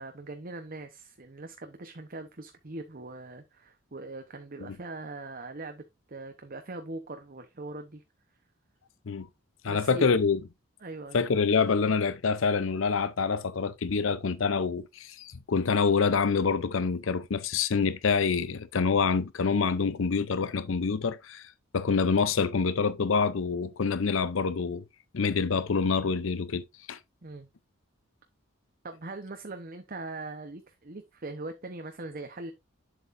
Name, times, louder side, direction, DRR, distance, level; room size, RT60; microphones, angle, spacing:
voice 1, 0.0-5.8 6.1-8.0 9.6-10.1 10.8-11.2 27.2-27.5 28.8-32.5, right 2 dB, 45° right, 0.9 m, -41 dB
voice 2, 9.6-10.4 11.1-21.4 21.7-24.8 25.1-27.0, left 5 dB, 70° left, 0.6 m, -26 dB
7.9 x 7.5 x 2.6 m
head